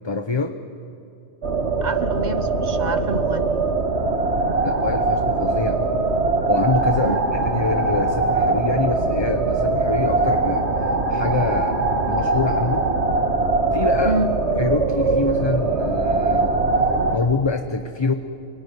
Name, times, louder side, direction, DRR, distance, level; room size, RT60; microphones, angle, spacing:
voice 1, 0.0-0.6 4.6-5.8 6.5-11.8 12.1-12.9 13.7-14.2 14.6-16.5 17.1-18.1, left 4 dB, 25° left, 7 dB, 0.8 m, -25 dB
sound 1, 1.4-17.2, right 3 dB, 90° right, 2.0 m, -21 dB
voice 2, 1.8-3.7 7.0-7.2 14.0-14.3, right 3 dB, 45° right, 11 dB, 1.1 m, -27 dB
26.0 x 22.5 x 9.7 m, 2.7 s
omnidirectional pair, 1.1 m